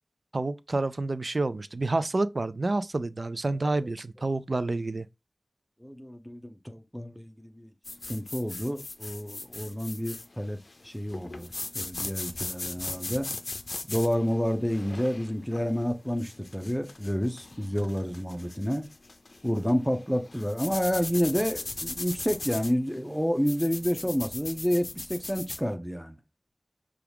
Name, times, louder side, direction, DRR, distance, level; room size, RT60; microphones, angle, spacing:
voice 1, 0.3-5.1, right 2 dB, 60° right, 0.3 m, -29 dB
voice 2, 5.8-7.7 8.1-10.6 10.8-13.3 13.9-18.8 19.4-26.2, equal, 5° left, 0.7 m, -29 dB
sound 1, 7.8-25.6, left 2 dB, 65° left, 0.5 m, -39 dB
5.8 x 2.4 x 3.4 m
wide cardioid pair, 70°, 0 cm